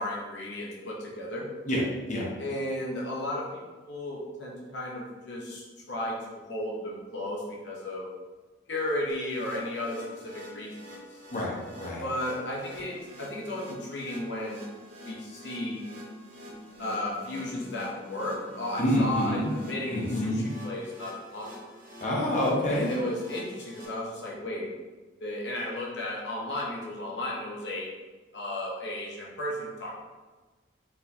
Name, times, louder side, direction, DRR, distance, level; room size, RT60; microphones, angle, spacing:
voice 1, 0.0-1.5 2.4-8.1 8.7-10.9 12.0-14.7 15.0-15.9 16.8-21.7 22.7-24.7 25.2-27.9 28.3-30.0, left 1 dB, 70° left, -4 dB, 0.9 m, -34 dB
sound 1, 9.1-23.9, left 1 dB, 45° right, 1.0 m, -46 dB
voice 2, 11.3-12.0 18.8-19.5 19.9-20.5 22.0-23.0, left 1 dB, 40° left, -4 dB, 1.0 m, -27 dB
4.5 x 4.2 x 2.8 m, 1.3 s
head